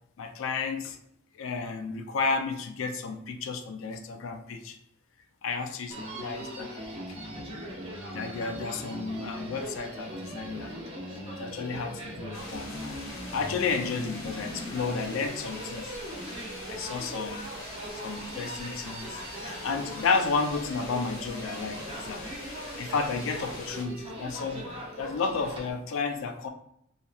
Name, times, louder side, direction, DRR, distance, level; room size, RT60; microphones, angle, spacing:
voice 1, 0.2-1.0 1.3-4.8 5.4-6.9 8.1-10.8 11.4-13.0 13.3-16.0 16.7-17.5 18.0-22.2 22.8-24.7 25.0-26.5, left 4 dB, 70° left, 6 dB, 0.4 m, -32 dB
Human voice, 5.9-25.7, equal, 25° right, 0.6 m, -40 dB
sound 1, 12.3-23.8, left 2 dB, 90° left, 0.7 m, -44 dB
2.9 x 2.4 x 2.3 m, 0.73 s
head